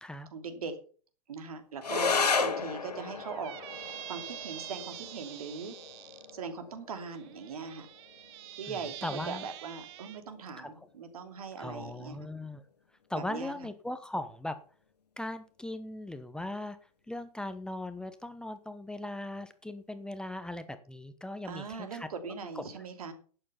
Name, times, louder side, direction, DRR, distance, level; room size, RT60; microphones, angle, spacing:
voice 1, 0.3-0.8 1.3-3.5 4.1-5.7 6.3-7.9 8.6-8.9 9.3-12.2 13.1-13.5 21.5-23.1, right 5 dB, 65° right, 8 dB, 2.9 m, -40 dB
sound 1, 1.8-10.8, left 5 dB, 85° left, 2.0 m, -35 dB
Squeak, 3.2-6.3 7.1-10.2, right 13 dB, 45° right, 1.3 m, -45 dB
voice 2, 8.7-9.5 10.6-10.7 11.6-12.6 13.1-14.6 15.2-16.8 17.1-22.6, left 1 dB, 5° left, 10 dB, 0.9 m, -39 dB
12.0 x 8.9 x 5.7 m, 0.42 s
figure-of-eight pair, 110°, 20 cm